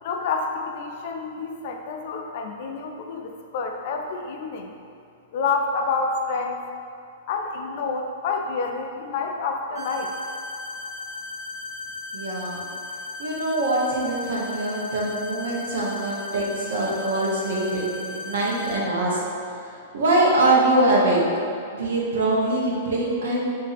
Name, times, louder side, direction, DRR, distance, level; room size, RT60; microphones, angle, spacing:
voice 1, 0.0-4.7 5.3-6.6 7.3-10.1, left 4 dB, 45° left, 3 dB, 0.4 m, -28 dB
sound 1, 9.7-18.7, left 3 dB, 30° right, 1.4 m, -36 dB
voice 2, 12.1-12.6 13.2-19.2 19.5-21.2 21.7-23.4, right 2 dB, 75° right, -4 dB, 1.0 m, -23 dB
4.1 x 2.7 x 4.0 m, 2.5 s
hypercardioid pair, 165°, 0 cm